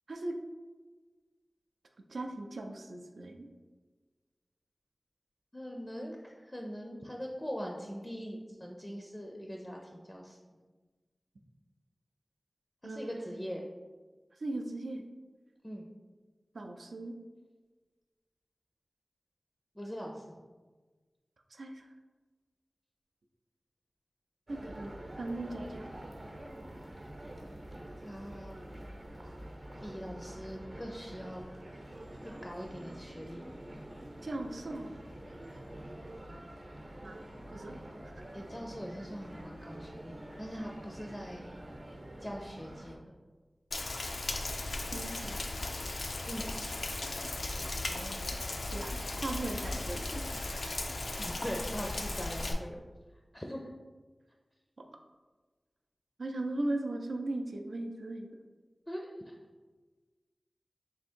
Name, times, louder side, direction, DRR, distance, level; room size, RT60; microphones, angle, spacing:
voice 1, 2.1-3.5 12.8-13.4 14.4-15.0 16.5-17.1 21.5-21.9 24.5-24.9 25.2-25.9 34.2-35.0 37.0-37.2 37.5-38.2 44.9-45.4 47.1-47.3 47.9-48.4 48.7-50.8 56.2-58.3, right 2 dB, 90° right, 3 dB, 0.4 m, -38 dB
voice 2, 5.5-10.4 12.8-13.6 15.6-15.9 19.7-20.4 28.0-28.6 29.8-31.4 32.2-33.5 38.3-41.6 42.2-43.1 46.3-46.5 51.2-52.8 53.3-53.7 58.9-59.3, equal, 15° left, 0 dB, 0.4 m, -42 dB
sound 1, 24.5-42.9, right 1 dB, 60° right, 0.7 m, -47 dB
Rain, 43.7-52.5, left 2 dB, 80° left, 0.4 m, -36 dB
3.4 x 2.7 x 4.3 m, 1.3 s
wide cardioid pair, 75°, 0 cm